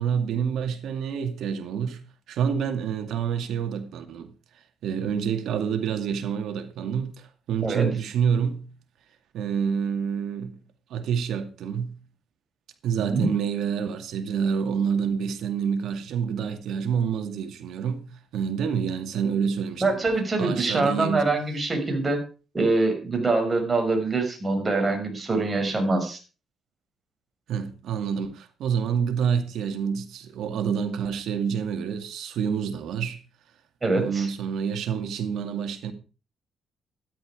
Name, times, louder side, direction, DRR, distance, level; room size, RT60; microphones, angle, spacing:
voice 1, 0.0-2.0 2.3-4.3 4.8-8.7 9.3-10.6 10.9-12.0 12.8-20.0 20.4-21.3 27.5-33.2 33.9-35.9, right 7 dB, 75° right, 2.3 m, -28 dB
voice 2, 12.9-13.3 19.8-22.2 22.5-26.2 33.8-34.3, right 3 dB, 25° right, 5.9 m, -24 dB
13.0 x 11.0 x 5.0 m
cardioid pair, 90°, 0 cm